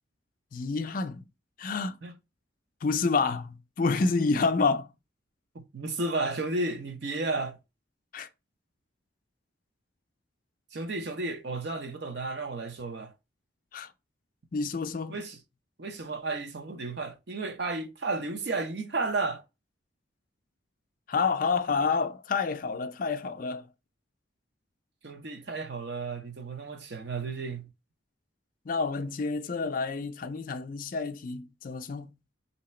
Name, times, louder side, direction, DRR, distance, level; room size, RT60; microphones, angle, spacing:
voice 1, 0.5-1.2 1.6-2.0 2.8-4.9 8.1-8.3 13.7-13.9 14.5-15.2 21.1-23.7 28.6-32.1, left 4 dB, 45° left, 0.4 m, -28 dB
voice 2, 5.5-7.6 10.7-13.1 15.1-15.4 15.8-19.4 25.0-27.7, right 3 dB, 60° right, 0.7 m, -33 dB
3.2 x 2.8 x 4.2 m
head